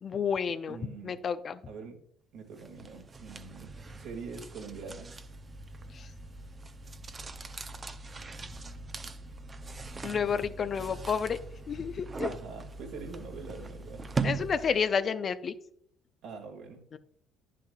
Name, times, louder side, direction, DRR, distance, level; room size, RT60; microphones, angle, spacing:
voice 1, 0.0-0.8 1.0-1.6 5.9-6.1 10.0-11.4 11.7-12.3 14.2-15.5 16.9-17.0, left 6 dB, 45° left, 11 dB, 0.6 m, -30 dB
voice 2, 0.7-1.2 1.7-2.0 2.3-5.2 12.3-14.1 16.2-16.8, right 5 dB, 70° right, 3 dB, 2.1 m, -44 dB
sound 1, 2.6-14.9, right 4 dB, 30° right, 0.7 m, -40 dB
9.7 x 7.5 x 2.4 m, 0.68 s
supercardioid pair, 75°, 0 cm